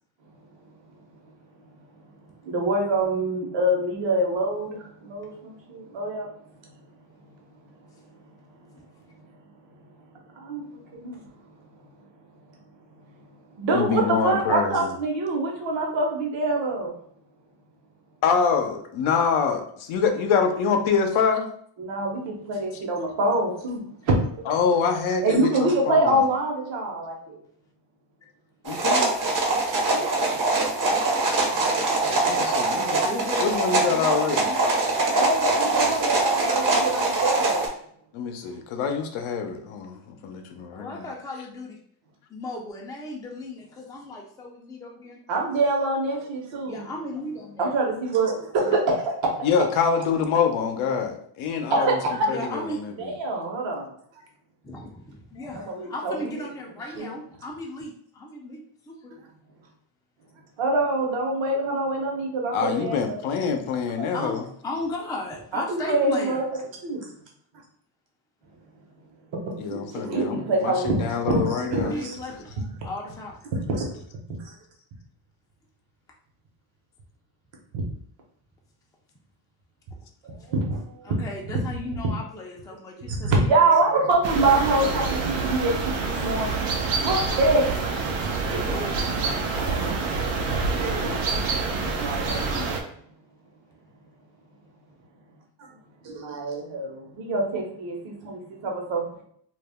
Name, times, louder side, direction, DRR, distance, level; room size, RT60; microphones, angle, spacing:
voice 1, 0.6-1.4 1.6-6.8 7.2-9.2 10.1-12.1 12.7-12.8 13.5-17.0 21.8-24.5 25.2-27.4 29.9-30.3 35.1-37.7 45.3-46.8 47.6-49.0 49.2-49.3 51.7-52.3 53.0-53.8 55.6-56.1 57.0-57.1 60.6-63.4 63.9-64.1 65.5-66.4 66.8-67.1 69.0-72.1 72.8-72.9 73.5-73.9 74.4-74.5 77.7-77.8 80.2-81.2 83.1-87.7 88.5-88.8 89.5-91.4 91.9-92.5 95.6-95.7 96.0-99.2, right 2 dB, 65° right, 0 dB, 1.0 m, -26 dB
voice 2, 13.7-14.9 18.2-21.5 24.4-26.3 28.6-29.1 31.3-33.0 33.4-34.5 38.1-41.1 41.4-41.5 49.4-53.1 62.5-64.5 69.6-72.0, left 6 dB, 75° left, 5 dB, 0.7 m, -26 dB
sound 1, 28.6-37.7, right 2 dB, 40° right, 0.7 m, -23 dB
voice 3, 33.0-33.5 33.9-34.8 40.7-41.8 42.3-45.2 46.6-47.8 52.2-52.8 54.6-59.1 64.1-66.4 71.9-73.4 81.0-83.6 88.5-88.9 92.5-92.9, left 1 dB, 10° left, -1 dB, 0.4 m, -36 dB
sound 2, 84.2-92.8, right 4 dB, 80° right, 0.7 m, -27 dB
2.5 x 2.0 x 3.4 m, 0.63 s
cardioid pair, 110°, 49 cm